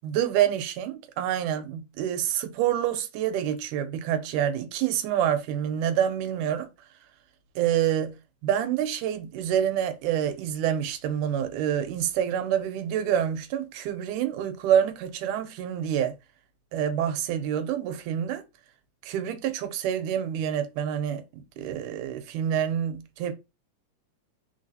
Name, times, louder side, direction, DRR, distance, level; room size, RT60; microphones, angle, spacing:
voice 1, 0.0-6.7 7.6-8.2 8.4-16.2 16.7-18.4 19.0-21.2 21.6-23.3, right 9 dB, 85° right, 2.1 m, -27 dB
4.0 x 3.9 x 2.7 m
omnidirectional pair, 3.7 m